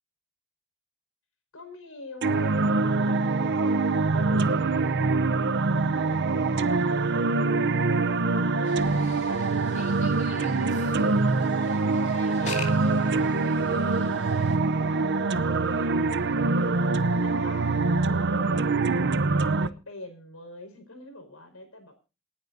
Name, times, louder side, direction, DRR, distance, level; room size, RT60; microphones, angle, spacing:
voice 1, 1.5-5.4 5.7-12.4 12.7-16.8 17.2-17.7 18.0-21.9, left 2 dB, 85° left, 7 dB, 5.2 m, -44 dB
sound 1, 2.2-19.7, right 3 dB, 55° right, 0.7 m, -24 dB
sound 2, 8.6-14.6, left 4 dB, 35° left, 2.8 m, -43 dB
28.0 x 9.8 x 2.7 m, 0.32 s
head